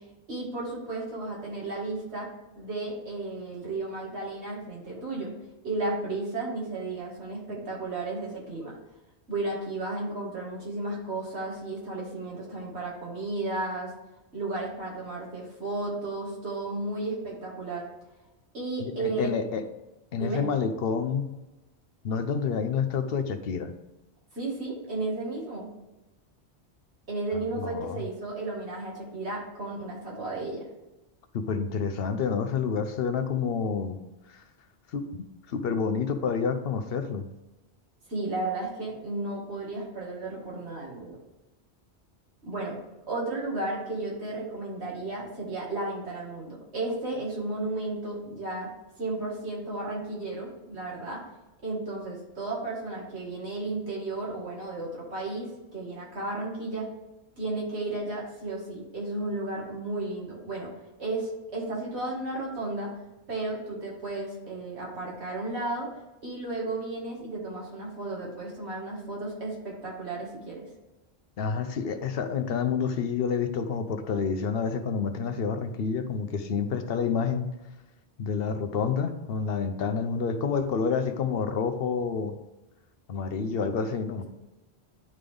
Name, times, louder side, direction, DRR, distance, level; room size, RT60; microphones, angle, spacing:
voice 1, 0.3-2.3 2.6-5.3 5.6-8.8 9.3-13.9 14.3-17.8 18.5-19.3 20.2-20.4 24.3-25.7 27.1-30.7 38.1-41.2 42.4-42.8 43.1-48.7 49.0-51.2 51.6-56.9 57.4-60.7 61.0-62.9 63.3-65.9 66.2-70.7, right 2 dB, 75° right, -4 dB, 2.2 m, -33 dB
voice 2, 18.8-19.6 20.1-21.3 22.0-23.7 27.6-28.1 31.3-34.0 34.3-34.4 34.9-37.3 71.4-77.5 78.2-82.4 83.1-84.2, left 6 dB, 65° left, 9 dB, 0.8 m, -28 dB
11.0 x 3.8 x 3.4 m, 1.0 s
omnidirectional pair, 1.1 m